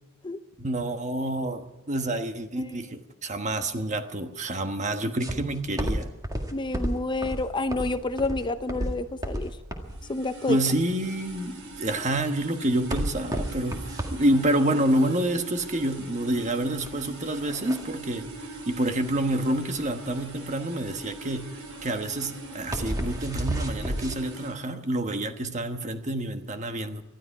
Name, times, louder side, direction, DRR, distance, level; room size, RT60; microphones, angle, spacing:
voice 1, 0.6-6.1 10.5-18.3 18.7-21.5 21.8-27.0, right 1 dB, 35° right, 7 dB, 1.3 m, -28 dB
sound 1, 5.2-24.2, equal, 15° right, 1.9 m, -33 dB
voice 2, 6.5-9.5 10.1-10.6, left 2 dB, 20° left, 10 dB, 0.6 m, -29 dB
sound 2, 9.9-24.6, right 2 dB, 75° right, 3.5 m, -42 dB
20.0 x 13.0 x 4.8 m, 1.1 s
head